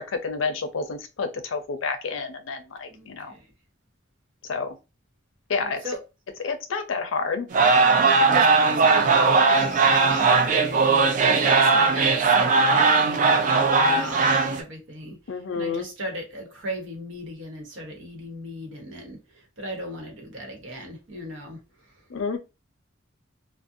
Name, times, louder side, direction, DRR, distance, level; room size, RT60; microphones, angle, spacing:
voice 1, 0.0-3.3 4.4-4.7 5.5-5.8 6.4-7.5 15.3-15.9 22.1-22.4, left 4 dB, 80° left, 0.5 m, -29 dB
voice 2, 2.9-3.4 5.6-6.0 8.0-12.5 12.9-15.2 15.5-19.2 19.6-21.6, equal, 75° right, 0.9 m, -36 dB
sound 1, 7.5-14.6, right 4 dB, 40° right, 0.3 m, -19 dB
2.4 x 2.0 x 2.6 m
head